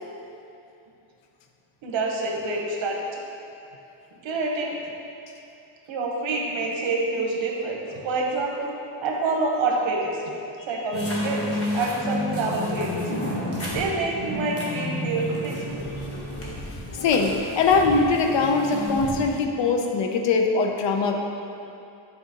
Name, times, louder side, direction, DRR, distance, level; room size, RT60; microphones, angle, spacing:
voice 1, 1.8-3.1 4.2-4.8 5.9-8.7 9.0-10.3 10.7-13.1 13.7-15.9, right 3 dB, 75° right, -1 dB, 1.0 m, -27 dB
sound 1, 10.9-19.3, left 1 dB, 30° left, 1.1 m, -31 dB
voice 2, 17.0-21.1, left 4 dB, 70° left, 3 dB, 0.7 m, -22 dB
7.4 x 4.8 x 2.9 m, 2.7 s
cardioid pair, 135°, 46 cm